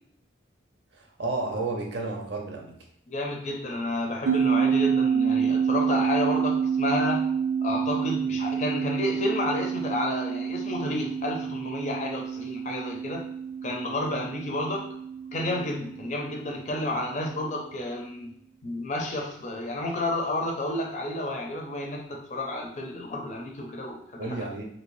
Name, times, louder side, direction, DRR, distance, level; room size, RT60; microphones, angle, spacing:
voice 1, 0.9-2.7 24.2-24.6, right 3 dB, 60° right, 0 dB, 0.6 m, -32 dB
voice 2, 3.1-7.3 7.6-13.3 13.6-14.9 15.3-18.3 18.6-24.4, left 1 dB, 35° left, 0 dB, 0.5 m, -31 dB
sound 1, 4.3-17.0, right 7 dB, 90° right, 0.3 m, -28 dB
2.8 x 2.6 x 3.1 m, 0.71 s
head